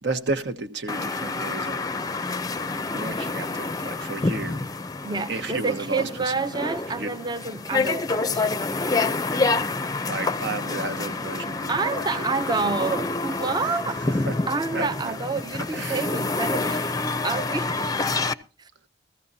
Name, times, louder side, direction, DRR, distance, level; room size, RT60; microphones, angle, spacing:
voice 1, 0.0-1.9 2.9-4.6 5.3-7.1 10.1-11.9 12.4-12.6 12.9-13.2 13.6-13.8 14.1-14.4 14.7-15.1 15.7-16.1 16.7-16.8, right 2 dB, 70° right, 1.3 m, -33 dB
sound 1, 0.9-18.3, left 3 dB, 20° left, 0.6 m, -28 dB
voice 2, 5.0-8.7 11.7-14.0 14.5-16.9 17.2-17.9, right 4 dB, 25° right, 0.6 m, -28 dB
16.0 x 14.5 x 2.8 m
head